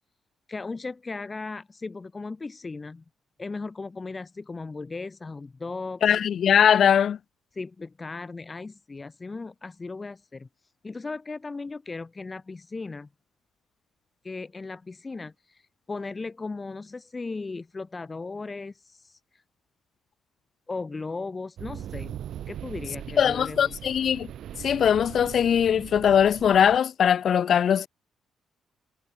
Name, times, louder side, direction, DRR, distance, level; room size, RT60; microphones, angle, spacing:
voice 1, 0.5-3.0 3.4-6.0 7.5-10.5 10.8-13.1 14.2-15.6 15.9-19.4 20.7-22.2 22.5-23.7, left 3 dB, 25° left, 2.0 m, -37 dB
voice 2, 6.0-7.2 23.2-24.3 24.6-27.9, left 8 dB, 60° left, 0.3 m, -21 dB
sound 1, 21.6-26.8, right 10 dB, 70° right, 4.0 m, -40 dB
cardioid pair, 90°, 0 cm